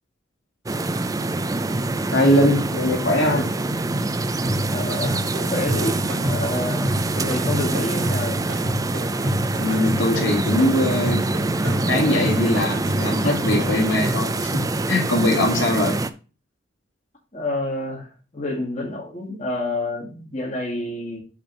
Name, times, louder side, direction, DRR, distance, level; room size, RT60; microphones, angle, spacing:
sound 1, 0.7-16.1, right 2 dB, 20° right, 0.4 m, -25 dB
voice 1, 2.1-3.5 9.6-11.3 11.9-14.5 14.9-16.0, left 1 dB, 75° left, 2.3 m, -21 dB
sound 2, 4.4-14.4, equal, 75° right, 2.4 m, -29 dB
voice 2, 4.7-8.4 17.3-18.1 18.3-21.2, left 2 dB, 35° left, 2.0 m, -28 dB
7.3 x 3.4 x 5.9 m
head